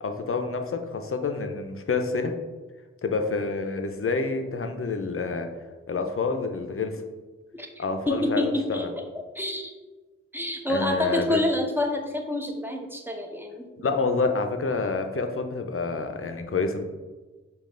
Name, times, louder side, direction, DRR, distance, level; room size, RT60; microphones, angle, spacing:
voice 1, 0.0-2.3 3.0-5.5 5.9-7.0 7.8-8.9 10.7-11.4 13.8-16.8, left 4 dB, 45° left, 6 dB, 0.6 m, -28 dB
voice 2, 7.5-9.0 9.3-9.7 10.3-13.7, left 1 dB, 5° right, 2 dB, 0.7 m, -28 dB
5.1 x 2.4 x 3.7 m, 1.2 s
cardioid pair, 45°, 29 cm